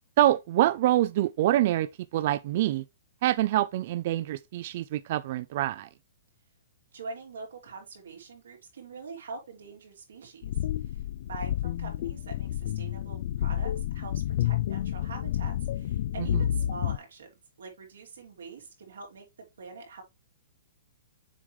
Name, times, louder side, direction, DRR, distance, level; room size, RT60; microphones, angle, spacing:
voice 1, 0.2-2.8 3.2-5.9 16.2-16.4, right 14 dB, 45° right, 0.3 m, -25 dB
voice 2, 6.9-10.4 10.8-11.0 11.3-19.3 19.6-20.0, right 4 dB, 90° right, 3.3 m, -44 dB
sound 1, 10.4-17.0, left 11 dB, 55° left, 0.4 m, -30 dB
7.3 x 4.7 x 3.1 m
hypercardioid pair, 160°, 0 cm